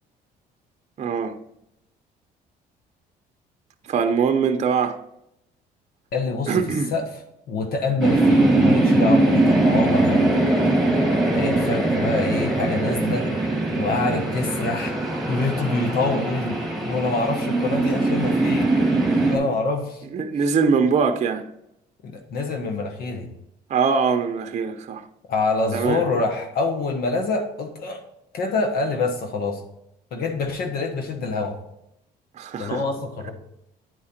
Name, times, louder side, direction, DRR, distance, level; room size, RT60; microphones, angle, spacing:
voice 1, 1.0-1.4 3.9-5.0 6.5-6.9 20.1-21.5 23.7-25.1 25.7-26.0 32.4-32.8, right 5 dB, 40° right, 0.7 m, -22 dB
voice 2, 6.1-6.6 6.9-7.0 7.5-10.4 11.3-13.3 13.8-14.9 15.3-16.6 16.8-18.7 19.3-20.0 22.0-23.3 25.3-28.0 28.3-29.6 30.1-31.6 32.6-33.3, left 3 dB, 65° left, 1.2 m, -26 dB
sound 1, 8.0-19.4, right 2 dB, ahead, 2.0 m, -21 dB
9.5 x 4.8 x 4.4 m
cardioid pair, 110°, 17 cm